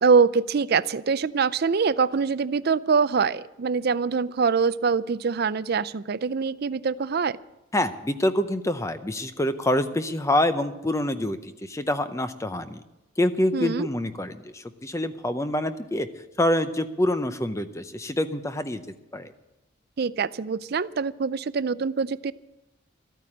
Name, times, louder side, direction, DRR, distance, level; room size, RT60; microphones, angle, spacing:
voice 1, 0.0-7.4 13.5-13.9 20.0-22.3, right 5 dB, 50° right, 17 dB, 0.4 m, -24 dB
voice 2, 7.7-12.8 13.2-16.1 16.4-18.8 19.1-19.3, left 1 dB, 15° left, 10 dB, 0.6 m, -26 dB
14.0 x 9.2 x 8.6 m, 0.98 s
head